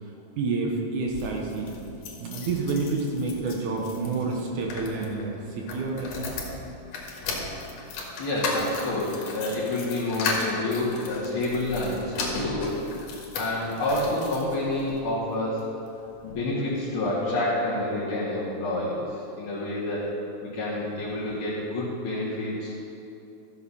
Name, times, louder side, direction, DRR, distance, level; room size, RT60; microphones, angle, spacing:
voice 1, 0.4-1.7 2.2-6.3, right 3 dB, 75° right, 0 dB, 2.5 m, -29 dB
sound 1, 1.0-15.0 15.6-16.4 16.8-16.9 17.1-17.2, left 3 dB, 85° left, 2.9 m, -36 dB
voice 2, 8.2-12.7 13.0-15.7 16.2-20.1 20.4-22.7, left 1 dB, 45° left, -9 dB, 2.5 m, -28 dB
13.0 x 6.8 x 5.6 m, 2.8 s
omnidirectional pair, 3.5 m